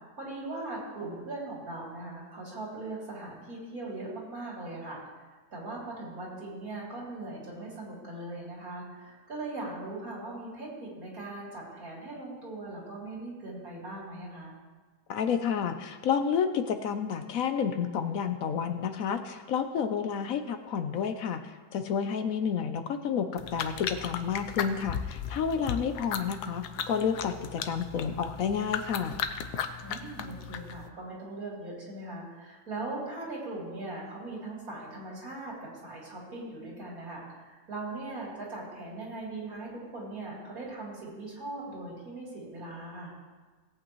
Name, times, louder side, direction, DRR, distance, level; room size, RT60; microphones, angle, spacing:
voice 1, 0.2-14.5 29.8-43.2, right 2 dB, 65° right, -5 dB, 3.8 m, -40 dB
voice 2, 15.1-21.4 21.7-29.2, left 7 dB, 70° left, 8 dB, 1.0 m, -30 dB
sound 1, 23.4-30.9, left 8 dB, 85° left, 1.2 m, -36 dB
18.0 x 8.6 x 3.1 m, 1.4 s
omnidirectional pair, 1.7 m